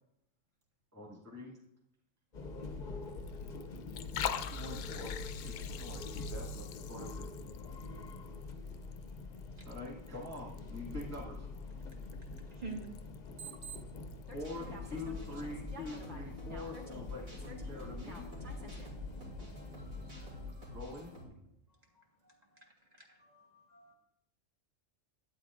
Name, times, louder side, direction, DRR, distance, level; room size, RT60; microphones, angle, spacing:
voice 1, 0.9-1.5 4.5-7.3 9.6-11.5 14.3-18.3 19.8-20.1 20.7-21.1, left 2 dB, 10° right, -6 dB, 2.0 m, -45 dB
sound 1, 2.3-20.5, left 3 dB, 40° left, 0.8 m, -45 dB
Liquid, 3.0-14.5, left 10 dB, 75° left, 0.9 m, -46 dB
voice 2, 12.5-12.9 21.9-22.7 23.0-23.9, right 3 dB, 30° right, 1 dB, 1.5 m, -48 dB
voice 3, 13.1-13.8 14.3-17.1 17.5-18.9 20.1-20.3, right 2 dB, 55° right, 0 dB, 2.1 m, -51 dB
sound 2, 14.4-21.2, left 2 dB, 85° right, 3.4 m, -47 dB
11.5 x 9.1 x 2.6 m, 0.81 s
omnidirectional pair, 1.4 m